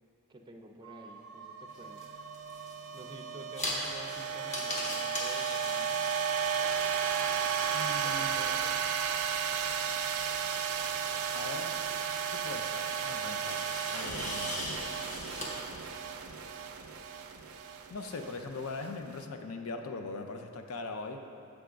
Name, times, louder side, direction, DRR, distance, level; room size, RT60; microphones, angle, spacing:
voice 1, 0.3-2.0 2.9-6.0 8.0-8.8, right 1 dB, 20° right, 2 dB, 0.4 m, -50 dB
sound 1, 0.8-19.1, right 7 dB, 75° right, 0.4 m, -34 dB
sound 2, 1.7-15.5, left 1 dB, 30° left, 0.9 m, -42 dB
voice 2, 7.7-8.5 11.3-11.8 12.3-13.6 13.9-14.8 17.9-21.2, left 3 dB, 70° left, 6 dB, 0.5 m, -40 dB
7.5 x 3.5 x 5.0 m, 2.6 s
head